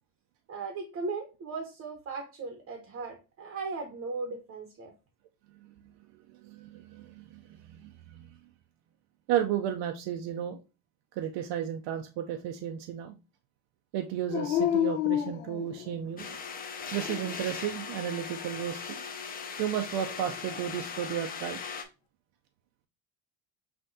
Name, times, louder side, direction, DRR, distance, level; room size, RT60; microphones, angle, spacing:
voice 1, 0.5-4.9, right 4 dB, 35° right, 4 dB, 0.7 m, -37 dB
voice 2, 6.4-8.3 9.3-10.6 11.1-13.1 13.9-16.3 16.9-19.0 19.6-21.6, right 10 dB, 75° right, 5 dB, 0.5 m, -33 dB
Dog, 14.3-16.2 16.8-17.6 19.9-20.8, left 12 dB, 85° left, 0.8 m, -31 dB
sound 1, 16.2-21.8, left 6 dB, 25° left, 0.4 m, -39 dB
5.7 x 2.6 x 2.6 m, 0.30 s
cardioid pair, 165°, 43 cm